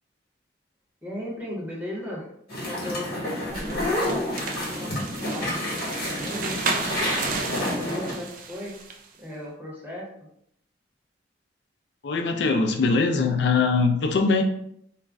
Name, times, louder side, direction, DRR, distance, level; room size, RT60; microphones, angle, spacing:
voice 1, 1.0-2.3 2.6-5.7 6.2-8.8 9.2-10.1, left 1 dB, 10° right, -5 dB, 0.9 m, -37 dB
sound 1, 2.5-8.1, left 1 dB, 55° left, 1.1 m, -29 dB
sound 2, 3.5-9.1, right 4 dB, 50° right, 0.4 m, -33 dB
voice 2, 12.0-14.4, left 4 dB, 70° left, 5 dB, 0.4 m, -22 dB
2.4 x 2.1 x 3.4 m, 0.72 s
head